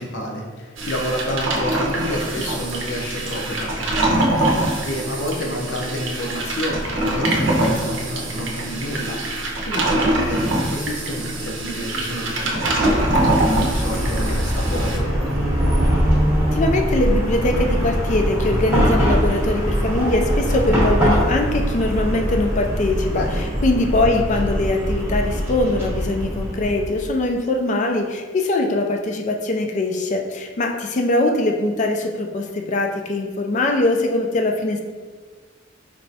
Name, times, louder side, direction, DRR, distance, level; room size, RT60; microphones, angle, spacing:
voice 1, 0.0-15.1 23.1-23.4, equal, 65° left, 0 dB, 0.7 m, -29 dB
sound 1, 0.8-15.0, right 1 dB, 75° right, 0.6 m, -23 dB
Chatter / Car passing by / Traffic noise roadway noise, 12.8-27.1, equal, 10° right, 0.8 m, -22 dB
voice 2, 16.5-23.2 23.6-34.8, left 2 dB, 40° left, 3 dB, 0.4 m, -22 dB
4.5 x 3.0 x 2.7 m, 1.5 s
head